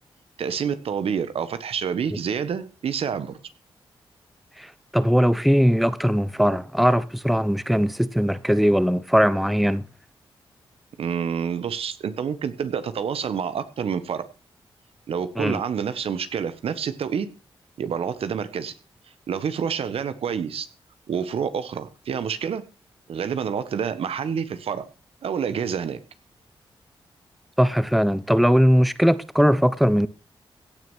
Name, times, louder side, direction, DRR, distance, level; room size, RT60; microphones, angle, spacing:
voice 1, 0.4-3.4 11.0-14.2 15.1-17.3 17.8-18.7 19.3-20.7 21.1-22.6 23.1-24.8 25.2-26.0, right 7 dB, 80° right, 1.4 m, -28 dB
voice 2, 4.6-9.9 15.4-15.6 27.6-30.1, equal, ahead, 1.0 m, -20 dB
16.5 x 6.5 x 6.3 m
cardioid pair, 60°, 10 cm